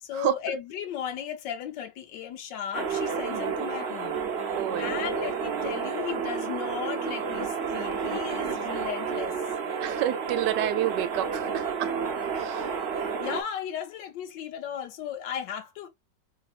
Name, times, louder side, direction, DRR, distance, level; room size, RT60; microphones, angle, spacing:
voice 1, 0.0-4.2 4.8-9.3 13.0-15.9, left 9 dB, 90° left, 1.4 m, -35 dB
sound 1, 2.7-13.4, right 6 dB, 50° right, 0.8 m, -31 dB
voice 2, 3.3-3.6 4.6-5.2 9.8-11.9 12.4-12.7, right 12 dB, 80° right, 1.2 m, -29 dB
4.1 x 3.3 x 2.4 m
omnidirectional pair, 1.9 m